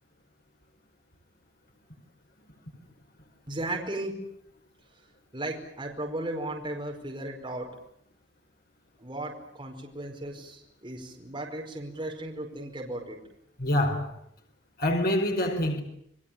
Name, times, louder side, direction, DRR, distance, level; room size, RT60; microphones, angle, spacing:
voice 1, 3.5-4.2 5.3-7.7 9.0-13.2, right 1 dB, 25° right, 5.0 m, -35 dB
voice 2, 13.6-14.1 14.8-15.8, left 1 dB, 55° left, 4.9 m, -26 dB
29.5 x 22.0 x 8.9 m
head